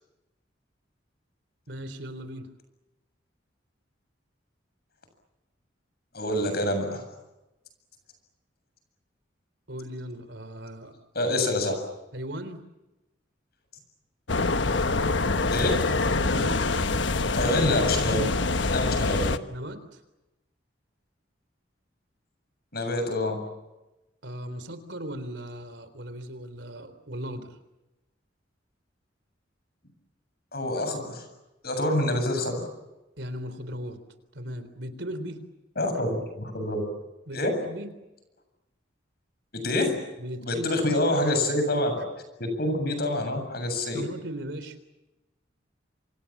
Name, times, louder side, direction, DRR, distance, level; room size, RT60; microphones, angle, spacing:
voice 1, 1.7-2.5 9.7-10.9 12.1-12.6 16.2-16.7 19.5-20.0 24.2-27.5 33.2-34.0 34.3-35.4 37.3-37.9 40.2-41.1 43.9-44.8, equal, 70° right, 11 dB, 3.8 m, -37 dB
voice 2, 6.1-7.0 11.1-11.7 15.5-15.8 17.3-18.3 18.7-19.3 22.7-23.4 30.5-31.3 31.6-32.7 35.8-36.8 37.3-37.6 39.5-40.0 40.4-41.9 42.4-44.0, left 1 dB, 55° left, 7 dB, 7.5 m, -26 dB
sound 1, 14.3-19.4, left 3 dB, 75° left, 1.3 m, -25 dB
28.5 x 26.0 x 7.4 m, 1.0 s
head